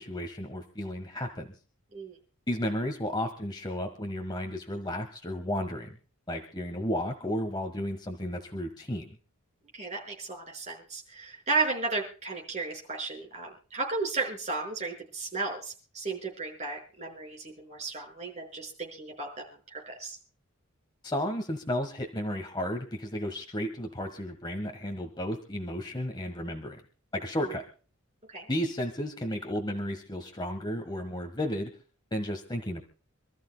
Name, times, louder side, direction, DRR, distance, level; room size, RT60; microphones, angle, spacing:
voice 1, 0.0-1.5 2.5-6.0 6.3-9.1 21.0-26.8 27.1-27.6 28.5-31.7 32.1-32.8, left 1 dB, 20° left, 4 dB, 1.4 m, -33 dB
voice 2, 9.7-20.2 27.4-27.5 28.3-28.5, right 3 dB, 35° right, 0 dB, 5.5 m, -34 dB
27.5 x 13.5 x 2.2 m, 0.39 s
head